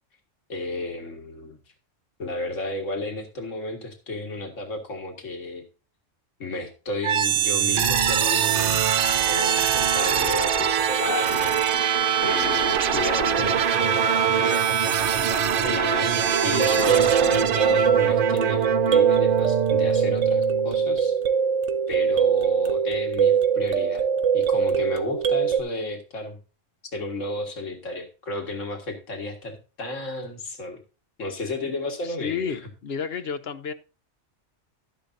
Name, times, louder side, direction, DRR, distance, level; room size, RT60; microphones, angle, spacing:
voice 1, 0.5-1.6 2.2-5.6 6.4-8.8 9.2-11.6 12.2-14.6 15.6-18.6 18.9-21.1 21.9-24.0 24.3-26.4 26.9-30.8 31.2-32.6, left 2 dB, 85° left, 2.1 m, -32 dB
sound 1, 7.0-20.9, right 8 dB, 55° right, 0.7 m, -23 dB
sound 2, 16.3-25.6, right 7 dB, 85° right, 1.2 m, -22 dB
voice 2, 32.0-33.7, left 6 dB, 60° left, 0.9 m, -31 dB
12.0 x 10.5 x 2.7 m
omnidirectional pair, 1.3 m